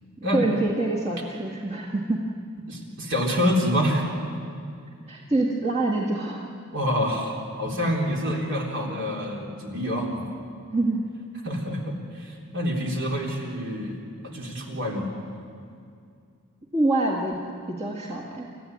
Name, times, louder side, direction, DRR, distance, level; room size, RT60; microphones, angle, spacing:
voice 1, 0.2-2.2 5.1-6.5 10.7-11.0 16.7-17.4 17.7-18.5, right 2 dB, 30° right, -3 dB, 1.8 m, -26 dB
voice 2, 2.7-4.1 6.7-10.2 11.4-14.0 14.2-15.1, equal, 55° right, -1 dB, 3.8 m, -27 dB
28.0 x 14.5 x 9.5 m, 2.3 s
head